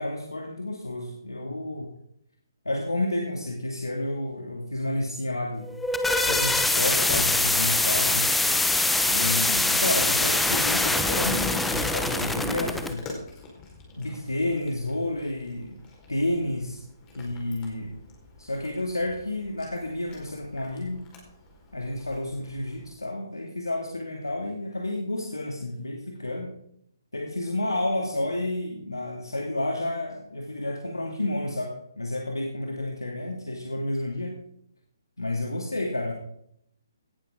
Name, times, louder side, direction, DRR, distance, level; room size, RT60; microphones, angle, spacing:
voice 1, 0.0-1.9 2.6-5.7 6.2-8.3 9.1-13.1 14.0-15.8 16.1-16.8 17.1-17.9 18.4-21.0 21.7-26.5 27.1-34.4 35.2-36.1, left 1 dB, 90° left, 0 dB, 2.3 m, -30 dB
sound 1, 5.6-12.9, left 2 dB, 5° left, 0.9 m, -24 dB
Cat, 5.8-22.9, left 3 dB, 20° left, 4.6 m, -46 dB
18.0 x 11.5 x 3.8 m, 0.72 s
figure-of-eight pair, 140°, 2 cm